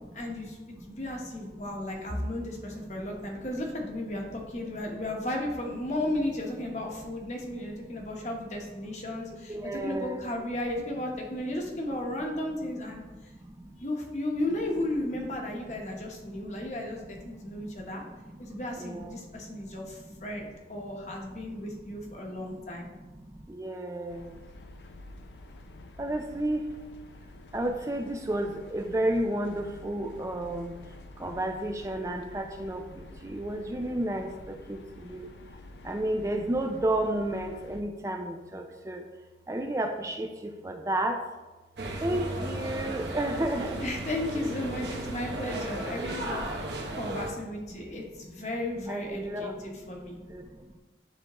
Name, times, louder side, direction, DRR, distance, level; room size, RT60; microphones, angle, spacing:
voice 1, 0.1-13.3 13.8-18.0 18.4-22.9 43.8-46.5 47.0-50.2, left 1 dB, 40° left, 0 dB, 1.0 m, -34 dB
voice 2, 9.5-10.2 13.4-13.7 15.9-16.0 16.2-16.5 17.3-18.4 18.8-19.8 22.4-22.5 22.9-24.4 26.0-26.7 27.5-30.7 31.2-35.3 35.8-39.0 39.5-41.2 42.0-43.8 46.9-47.0 48.9-50.0 50.3-50.7, right 1 dB, 15° right, 4 dB, 0.4 m, -32 dB
sound 1, 24.1-37.8, left 2 dB, 80° left, 0.5 m, -49 dB
sound 2, 41.8-47.3, right 1 dB, 75° right, 0.9 m, -35 dB
9.9 x 3.5 x 3.0 m, 1.2 s
head